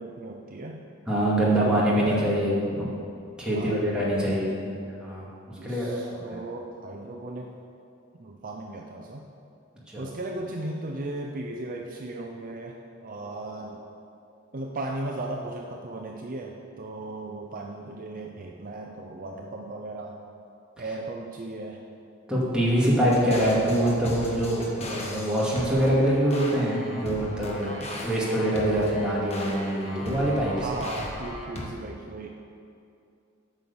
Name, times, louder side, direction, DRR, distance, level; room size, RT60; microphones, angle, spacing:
voice 1, 0.0-0.9 1.4-2.4 3.5-4.4 5.5-7.5 8.2-9.3 10.0-13.8 14.5-20.2 20.8-21.8 30.6-32.3, right 2 dB, 40° right, 1 dB, 0.6 m, -36 dB
voice 2, 1.1-2.9 3.4-5.3 5.6-6.4 9.9-10.1 22.3-30.7, right 1 dB, 5° right, -7 dB, 2.2 m, -25 dB
sound 1, 23.1-31.7, left 1 dB, 30° left, 1.2 m, -37 dB
8.9 x 6.2 x 7.0 m, 2.5 s
head